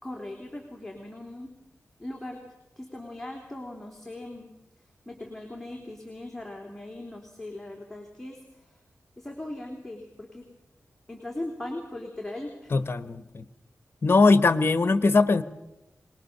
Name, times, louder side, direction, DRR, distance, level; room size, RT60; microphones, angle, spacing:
voice 1, 0.0-1.5 2.0-2.4 2.8-4.5 5.1-8.8 9.2-10.5 11.1-12.7, left 1 dB, 5° left, 0 dB, 3.4 m, -39 dB
voice 2, 12.7-13.4 14.0-15.4, left 3 dB, 45° left, 13 dB, 1.2 m, -21 dB
24.0 x 20.0 x 6.8 m, 0.95 s
wide cardioid pair, 90°, 5 cm